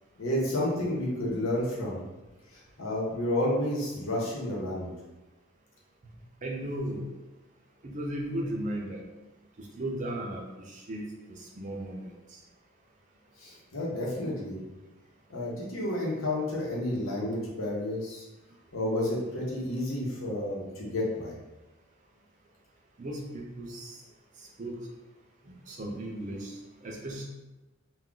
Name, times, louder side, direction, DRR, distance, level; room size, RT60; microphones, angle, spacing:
voice 1, 0.2-2.0 2.5-4.9 13.4-14.6 15.3-18.2 18.7-21.4, left 1 dB, 75° left, -4 dB, 0.8 m, -31 dB
voice 2, 6.4-7.0 7.8-9.0 9.6-11.0 11.4-12.1 23.0-24.0 24.6-24.8 25.7-26.5 26.8-27.2, right 1 dB, 35° right, 0 dB, 0.4 m, -35 dB
2.3 x 2.3 x 3.7 m, 1.1 s
head